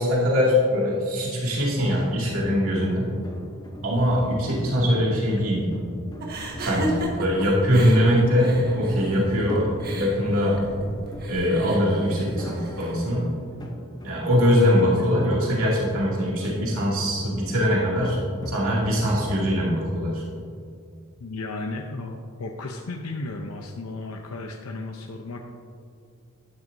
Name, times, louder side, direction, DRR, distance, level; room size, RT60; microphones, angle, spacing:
voice 1, 0.0-3.1 3.8-5.7 6.6-10.6 11.3-13.3 14.0-18.2 18.5-20.2, equal, 75° right, -5 dB, 2.4 m, -22 dB
sound 1, 1.5-19.6, left 1 dB, 20° left, 0.8 m, -41 dB
sound 2, 6.2-13.0, right 1 dB, 45° right, 1.5 m, -35 dB
voice 2, 21.2-25.4, left 2 dB, 85° left, 2 dB, 0.7 m, -34 dB
12.0 x 10.5 x 2.7 m, 2.4 s
head